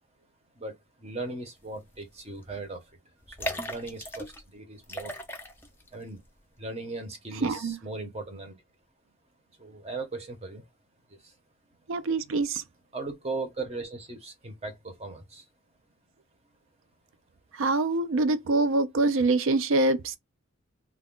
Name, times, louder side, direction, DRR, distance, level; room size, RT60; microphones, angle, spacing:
voice 1, 0.6-2.9 3.3-5.2 5.9-6.2 6.6-8.6 9.6-10.7 11.1-11.3 12.9-15.5, right 3 dB, 30° right, 0.7 m, -38 dB
sound 1, 1.9-2.2 2.4-2.5 3.2-4.4 4.8-5.9 6.2-6.3, equal, 10° left, 0.4 m, -36 dB
voice 2, 7.4-7.8 11.9-12.6 17.6-20.2, right 2 dB, 60° right, 0.4 m, -25 dB
2.3 x 2.1 x 3.6 m
head